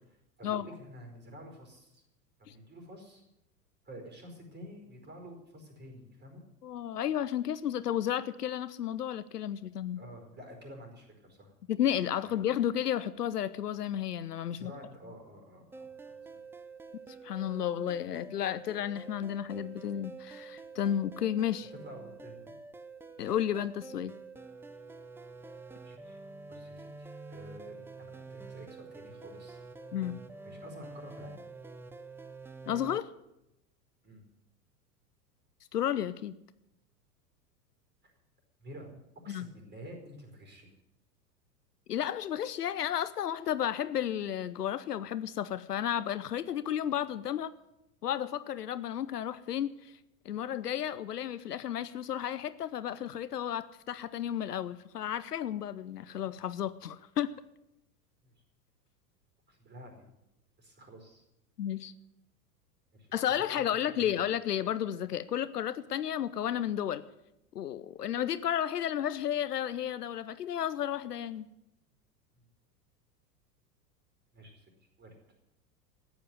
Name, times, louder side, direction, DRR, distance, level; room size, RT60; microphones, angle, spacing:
voice 1, 0.1-2.0 2.4-3.2 3.8-6.4 10.0-11.5 12.2-12.3 14.5-16.4 21.8-22.5 25.8-26.2 26.5-29.6 29.9-30.1 30.4-31.4 34.0-34.3 38.0-38.1 38.6-38.9 39.2-40.7 58.2-58.3 59.5-60.0 60.6-61.2 62.9-63.1 63.5-63.7 64.0-64.2 72.3-72.5 74.3-74.7 75.0-75.1, equal, 20° right, 4 dB, 4.8 m, -50 dB
voice 2, 6.6-10.0 11.7-14.7 17.2-21.7 23.2-24.1 29.9-30.2 32.7-33.1 35.7-36.3 39.3-39.5 41.9-47.5 48.0-49.9 50.2-57.3 61.6-61.9 63.1-67.0 67.5-71.5, left 10 dB, 70° left, 15 dB, 0.8 m, -32 dB
sound 1, 15.7-33.0, right 4 dB, 5° right, 0.5 m, -48 dB
14.5 x 9.4 x 9.7 m, 0.87 s
figure-of-eight pair, 85°, 49 cm